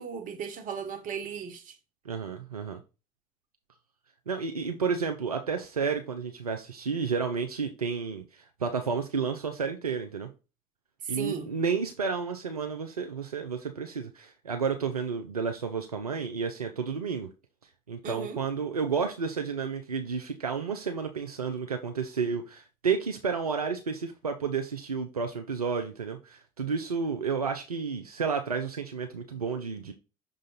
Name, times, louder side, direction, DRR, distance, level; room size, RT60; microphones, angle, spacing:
voice 1, 0.0-1.7 11.0-11.5 18.0-18.4, right 6 dB, 45° right, 1.4 m, -36 dB
voice 2, 2.0-2.8 4.3-10.3 11.1-17.3 17.9-29.9, right 5 dB, 85° right, 0.5 m, -31 dB
6.1 x 3.8 x 4.0 m
figure-of-eight pair, 60°, 19 cm